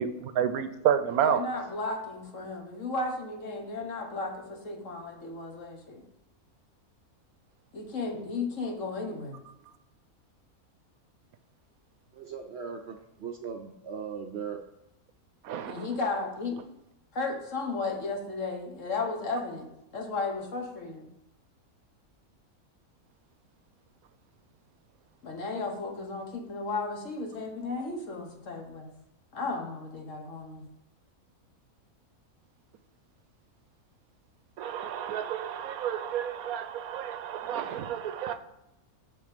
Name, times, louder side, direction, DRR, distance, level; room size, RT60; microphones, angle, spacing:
voice 1, 0.0-1.4 15.4-16.0 34.6-38.4, right 9 dB, 80° right, 11 dB, 1.0 m, -30 dB
voice 2, 1.2-6.0 7.7-9.4 15.7-16.5 17.1-19.7 19.9-21.1 25.2-28.9 29.3-30.6, left 3 dB, 60° left, 2 dB, 1.5 m, -34 dB
voice 3, 12.1-14.6, right 6 dB, 60° right, 5 dB, 0.7 m, -38 dB
6.7 x 6.5 x 5.1 m, 0.86 s
omnidirectional pair, 1.6 m